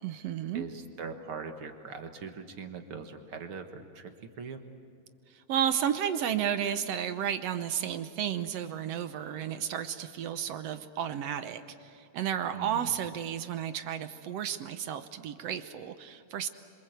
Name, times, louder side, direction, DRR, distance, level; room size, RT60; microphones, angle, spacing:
voice 1, 0.0-0.6 5.3-16.5, right 9 dB, 70° right, 10 dB, 1.7 m, -32 dB
voice 2, 0.5-4.1 4.4-4.6 12.5-12.9, right 5 dB, 50° right, 6 dB, 2.0 m, -41 dB
27.0 x 26.0 x 8.0 m, 2.6 s
omnidirectional pair, 3.4 m